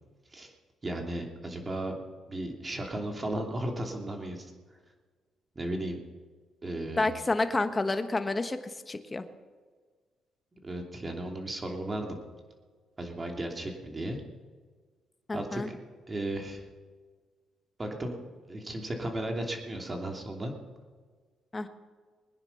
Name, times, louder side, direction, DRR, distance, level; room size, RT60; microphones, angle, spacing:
voice 1, 0.8-4.5 5.5-6.0 6.6-7.1 10.6-12.2 13.0-14.2 15.3-15.7 16.1-16.6 17.8-18.2 18.5-20.5, right 1 dB, 25° right, 2 dB, 2.9 m, -35 dB
voice 2, 7.0-9.2 15.3-15.7 21.5-21.7, left 2 dB, 25° left, 8 dB, 1.3 m, -29 dB
21.5 x 9.8 x 5.9 m, 1.5 s
cardioid pair, 90°, 0 cm